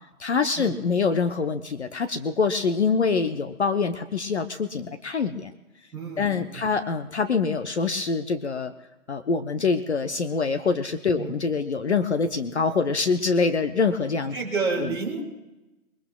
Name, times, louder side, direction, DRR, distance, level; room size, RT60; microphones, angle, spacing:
voice 1, 0.2-5.5 6.2-8.7 9.1-14.4 14.8-14.9, left 4 dB, 50° left, 8 dB, 0.9 m, -25 dB
voice 2, 5.9-6.7 11.2-11.4 14.3-15.2, right 4 dB, 10° right, -6 dB, 2.5 m, -30 dB
22.5 x 21.0 x 2.3 m, 1.0 s
figure-of-eight pair, 150°, 43 cm